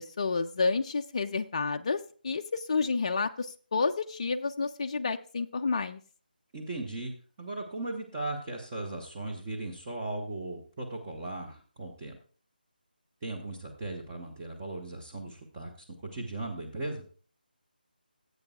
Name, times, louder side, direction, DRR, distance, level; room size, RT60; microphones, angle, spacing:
voice 1, 0.0-6.0, left 4 dB, 35° left, 6 dB, 0.3 m, -30 dB
voice 2, 6.5-7.1 7.4-12.2 13.2-17.0, right 2 dB, 20° right, -1 dB, 1.0 m, -37 dB
15.5 x 8.1 x 2.4 m, 0.40 s
figure-of-eight pair, 155°, 5 cm